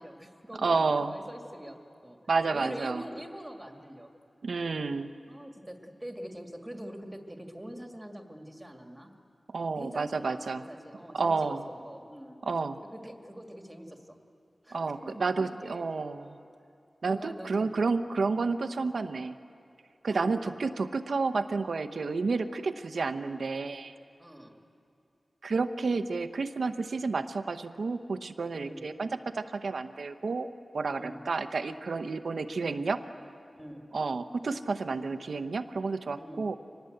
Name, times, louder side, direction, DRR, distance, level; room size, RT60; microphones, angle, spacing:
voice 1, 0.0-2.2 2.5-4.1 5.3-9.1 9.8-10.4 10.7-12.4 12.9-14.2 14.6-15.8 16.2-16.4 17.1-17.7 20.1-20.6 24.2-24.6 28.5-28.8 31.0-31.2 33.6-33.9 36.2-36.4, equal, 10° right, 3 dB, 2.1 m, -44 dB
voice 2, 0.6-1.1 2.3-3.0 4.4-5.1 9.5-10.6 11.1-11.6 12.4-12.8 14.7-16.3 17.0-19.3 20.0-23.9 25.4-30.5 30.7-33.0 33.9-36.5, right 4 dB, 75° right, 9 dB, 0.8 m, -30 dB
24.5 x 19.5 x 7.9 m, 2.6 s
wide cardioid pair, 105°, 0 cm